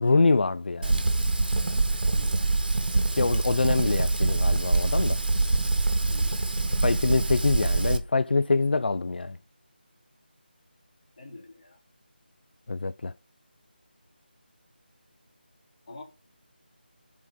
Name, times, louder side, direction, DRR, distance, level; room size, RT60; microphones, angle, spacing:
voice 1, 0.0-1.0 3.1-5.2 6.8-9.4 12.7-13.1, left 3 dB, 65° left, 0.4 m, -25 dB
Fire, 0.8-8.0, right 2 dB, 60° right, 1.9 m, -24 dB
voice 2, 2.1-2.5 6.1-6.7 11.2-11.8 15.9-16.0, left 3 dB, 40° left, 3.4 m, -47 dB
7.9 x 5.3 x 5.1 m
figure-of-eight pair, 165°, 6 cm